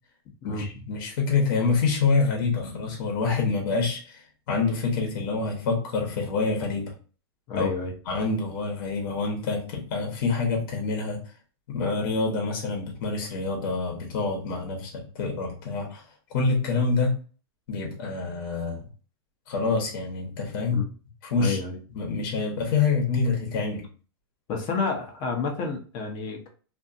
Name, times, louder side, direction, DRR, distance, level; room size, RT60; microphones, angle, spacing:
voice 1, 0.4-6.9 7.6-7.7 8.1-11.2 11.7-16.0 16.3-17.2 17.7-18.9 19.5-20.8 21.3-21.6 21.9-23.8, left 4 dB, 60° left, 0 dB, 1.0 m, -26 dB
voice 2, 7.5-7.9 20.7-20.8 21.4-21.8 24.5-26.5, left 4 dB, 35° left, 3 dB, 0.7 m, -29 dB
2.5 x 2.4 x 2.5 m, 0.38 s
supercardioid pair, 145°, 13 cm